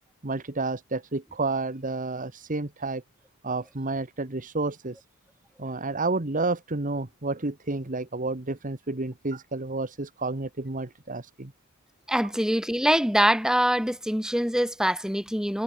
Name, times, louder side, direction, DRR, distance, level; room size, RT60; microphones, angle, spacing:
voice 1, 0.2-3.0 3.4-5.0 5.6-11.5, right 3 dB, 40° right, 1.4 m, -30 dB
voice 2, 12.1-15.6, equal, 5° right, 3.9 m, -24 dB
head